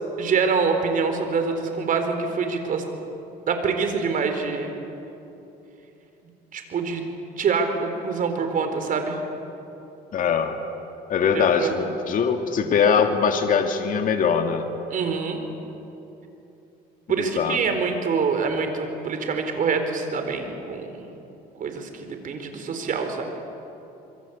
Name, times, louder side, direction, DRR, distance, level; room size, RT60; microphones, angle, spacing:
voice 1, 0.2-2.8 3.5-4.7 6.5-9.2 11.3-11.8 14.9-15.4 17.1-21.1 21.6-23.2, right 5 dB, 55° right, 6 dB, 4.2 m, -25 dB
voice 2, 10.1-10.6 11.1-14.6 17.4-17.6, left 6 dB, 55° left, 5 dB, 2.1 m, -21 dB
26.5 x 23.5 x 8.4 m, 2.9 s
cardioid pair, 110°, 17 cm